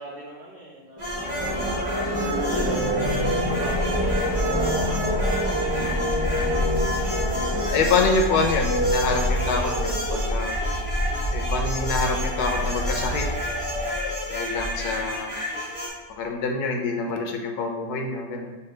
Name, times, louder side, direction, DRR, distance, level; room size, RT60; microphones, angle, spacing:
voice 1, 0.0-2.9 3.4-6.0, right 1 dB, 55° right, -11 dB, 1.5 m, -40 dB
sound 1, 1.0-15.1, equal, 30° left, 0.5 m, -26 dB
sound 2, 1.0-15.9, equal, 25° right, 0.9 m, -32 dB
Bass guitar, 5.7-9.3, left 1 dB, 85° right, 2.3 m, -42 dB
voice 2, 7.5-10.6 11.3-13.3 14.3-15.3 16.1-18.6, left 4 dB, 80° left, 3 dB, 1.2 m, -26 dB
6.9 x 2.3 x 3.2 m, 1.2 s
omnidirectional pair, 1.7 m